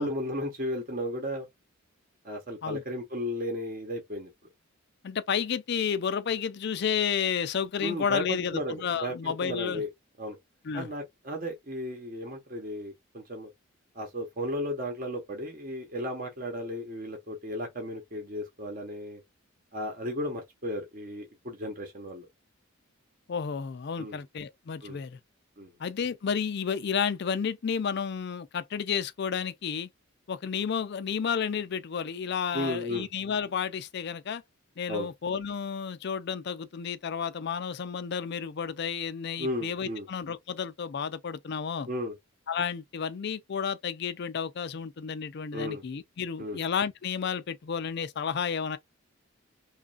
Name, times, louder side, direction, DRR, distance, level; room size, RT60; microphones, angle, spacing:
voice 1, 0.0-1.5 2.2-4.3 7.8-9.9 10.2-10.4 10.7-13.5 13.9-19.2 19.7-22.3 24.0-24.2 24.8-25.0 25.6-25.7 32.5-33.1 34.9-35.1 39.4-40.1 41.9-42.2 45.5-45.8 46.4-46.6, left 1 dB, 40° right, 0.9 m, -34 dB
voice 2, 5.0-9.8 10.6-10.9 23.3-25.2 25.8-29.9 30.3-34.4 34.8-41.9 42.5-48.8, left 7 dB, 50° left, 0.4 m, -31 dB
3.1 x 2.4 x 2.4 m
head